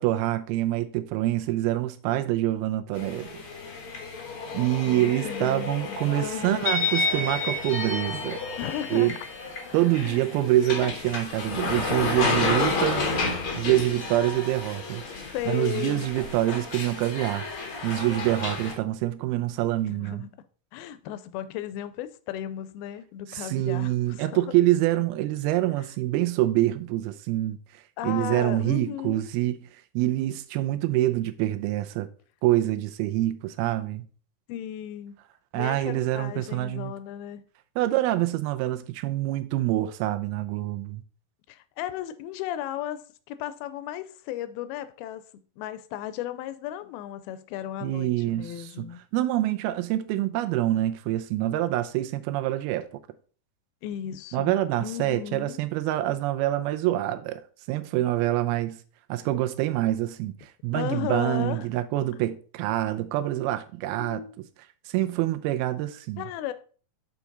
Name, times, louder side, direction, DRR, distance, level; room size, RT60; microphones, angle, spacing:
voice 1, 0.0-3.4 4.5-8.4 8.9-9.1 9.7-13.1 13.6-15.0 15.5-17.5 17.8-20.3 23.3-27.6 28.0-29.6 29.9-32.1 32.4-34.1 35.5-36.9 37.8-41.0 47.8-48.5 48.8-48.9 49.1-52.9 54.3-57.4 57.7-58.8 59.1-64.2 64.9-66.2, right 14 dB, 90° right, 2.5 m, -26 dB
sound 1, 2.9-18.7, left 3 dB, 65° left, 1.3 m, -31 dB
voice 2, 4.8-6.8 8.6-9.1 10.0-10.4 15.3-16.1 19.9-20.4 20.7-24.4 25.8-25.9 28.0-29.3 34.5-35.1 35.5-37.4 41.5-43.0 43.3-49.0 53.8-55.6 60.7-61.7 64.0-64.4 66.2-66.5, left 11 dB, 85° left, 2.5 m, -35 dB
7.1 x 4.9 x 3.9 m
omnidirectional pair, 4.4 m